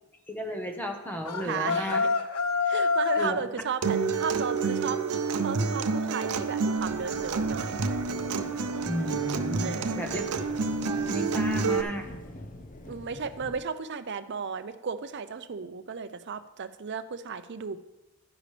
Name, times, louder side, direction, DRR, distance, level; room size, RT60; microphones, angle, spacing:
voice 1, 0.3-2.0 3.2-3.4 8.9-10.3 10.9-12.1, equal, 10° left, 3 dB, 1.0 m, -34 dB
sound 1, 1.2-3.4, left 4 dB, 75° left, 0.6 m, -26 dB
voice 2, 1.4-2.1 2.6-5.0 5.4-7.8 9.6-10.0 12.9-17.8, right 6 dB, 50° right, 11 dB, 0.5 m, -34 dB
Acoustic guitar, 3.8-11.8, right 4 dB, 90° right, 0.7 m, -28 dB
sound 2, 6.8-13.6, left 1 dB, 35° left, 0.6 m, -44 dB
11.5 x 10.0 x 3.3 m, 1.0 s
head